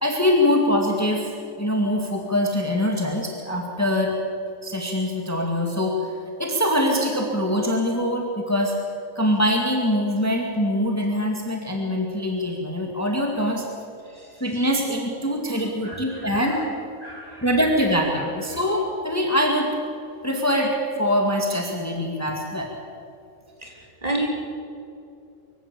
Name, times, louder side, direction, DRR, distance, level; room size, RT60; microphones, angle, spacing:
voice 1, 0.0-1.3 1.6-4.1 4.6-8.7 9.2-13.7 14.4-16.6 17.4-19.8 20.2-22.7, left 1 dB, 10° left, 1 dB, 2.0 m, -23 dB
voice 2, 15.8-16.5 17.0-17.5 23.6-23.7 24.0-24.3, right 2 dB, 30° right, -1 dB, 3.9 m, -30 dB
24.0 x 15.5 x 8.3 m, 2.6 s
omnidirectional pair, 1.4 m